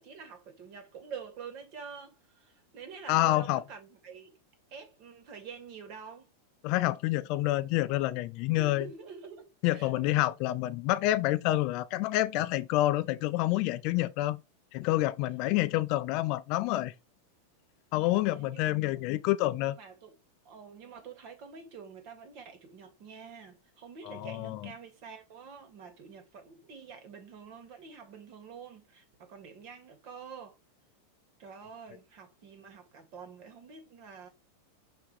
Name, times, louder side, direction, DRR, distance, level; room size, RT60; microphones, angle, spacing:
voice 1, 0.0-4.4 4.7-6.3 8.5-10.3 13.9-14.0 18.3-18.8 19.6-20.2 20.4-30.5 31.4-34.3, right 6 dB, 50° right, 2.5 m, -47 dB
voice 2, 3.1-3.6 6.6-8.9 9.6-14.4 14.7-16.9 17.9-19.8 24.1-24.7, left 16 dB, 50° left, 0.5 m, -28 dB
6.1 x 3.6 x 4.8 m
supercardioid pair, 140°, 0 cm